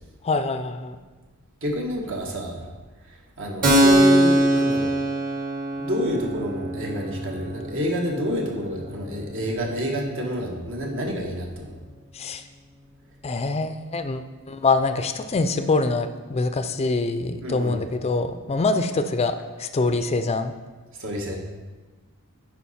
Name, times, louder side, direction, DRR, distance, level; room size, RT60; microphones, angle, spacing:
voice 1, 0.2-1.0 12.1-12.4 13.2-20.5, left 3 dB, 30° left, 9 dB, 0.4 m, -24 dB
voice 2, 1.6-2.7 3.0-4.9 5.8-11.8 17.4-17.8 20.9-21.4, equal, 60° right, 0 dB, 1.5 m, -28 dB
Keyboard (musical), 3.6-10.9, right 1 dB, 40° right, 1.3 m, -23 dB
10.0 x 4.9 x 4.2 m, 1.3 s
head